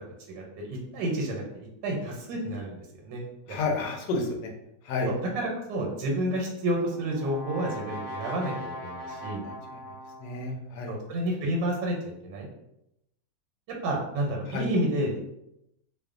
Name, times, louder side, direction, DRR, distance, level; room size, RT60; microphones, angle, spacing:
voice 1, 0.3-3.6 5.1-9.4 10.9-12.0 12.2-12.5 13.8-15.2, right 1 dB, 85° right, -1 dB, 1.3 m, -30 dB
voice 2, 3.5-4.3 4.8-5.1 9.4-9.5 10.2-10.9 14.5-14.7, left 3 dB, 85° left, 2 dB, 1.2 m, -30 dB
Brass instrument, 6.5-10.5, equal, 30° left, 0.9 m, -40 dB
3.0 x 2.1 x 2.4 m, 0.83 s
omnidirectional pair, 1.9 m